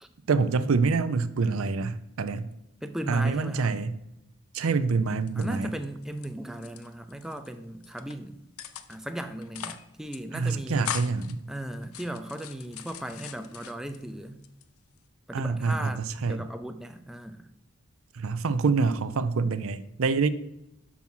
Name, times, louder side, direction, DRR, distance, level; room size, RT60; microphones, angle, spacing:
voice 1, 0.3-2.5 3.1-4.0 4.5-5.7 10.3-11.4 15.3-16.4 18.2-20.3, right 4 dB, 80° right, 13 dB, 0.5 m, -26 dB
voice 2, 2.8-3.8 5.3-8.4 8.9-10.9 11.5-14.4 15.3-16.0 16.3-17.5, right 1 dB, ahead, 8 dB, 0.4 m, -37 dB
sound 1, 5.2-6.3 6.5-7.5 7.8-8.1 8.6-9.1 9.4-9.9 10.1-10.2 10.5-11.3 11.8-14.0 14.4-15.1, left 9 dB, 85° left, 0.6 m, -40 dB
6.1 x 6.0 x 5.5 m, 0.86 s
head